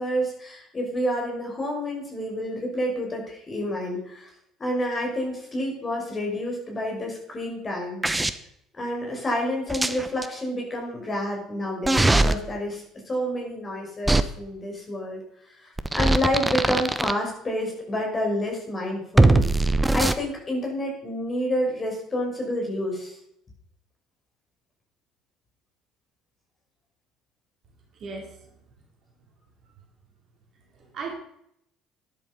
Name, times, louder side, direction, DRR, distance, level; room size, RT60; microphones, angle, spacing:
voice 1, 0.0-4.3 4.6-8.0 8.8-15.2 15.6-19.4 19.9-23.1, equal, 25° left, 0 dB, 6.2 m, -29 dB
sound 1, 8.0-8.3 9.7-10.3 11.8-12.3 14.1-14.2 15.8-17.1 19.2-20.1, right 2 dB, 10° right, 1.0 m, -20 dB
voice 2, 27.9-28.6 29.6-29.7 30.7-31.1, right 4 dB, 45° right, 1 dB, 3.7 m, -37 dB
13.0 x 10.5 x 5.5 m, 0.74 s
figure-of-eight pair, 55°, 0 cm